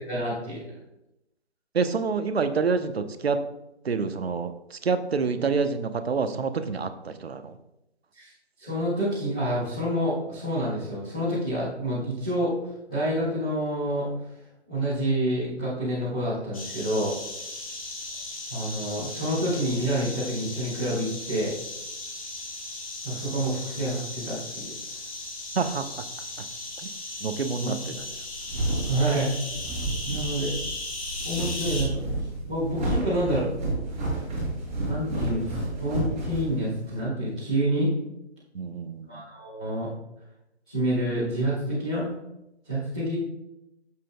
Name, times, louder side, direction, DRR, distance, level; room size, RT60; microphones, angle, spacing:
voice 1, 0.0-0.6 8.1-8.3 8.6-12.5 12.9-14.1 14.7-17.1 18.5-21.5 23.0-24.7 27.6-27.7 28.9-29.3 30.0-30.5 31.2-33.4 34.9-37.9 39.1-39.9 40.7-42.1 42.6-43.2, right 1 dB, 5° left, -16 dB, 0.6 m, -28 dB
voice 2, 1.7-3.4 3.8-7.6 25.5-25.9 26.4-26.5 26.8-26.9 27.2-28.1 30.1-30.2 38.5-39.2, right 5 dB, 60° right, 10 dB, 0.8 m, -27 dB
sound 1, 16.5-31.8, left 2 dB, 30° left, 1.4 m, -37 dB
sound 2, 28.1-37.0, right 2 dB, 10° right, 3.2 m, -31 dB
11.5 x 7.5 x 2.2 m, 0.89 s
figure-of-eight pair, 160°, 34 cm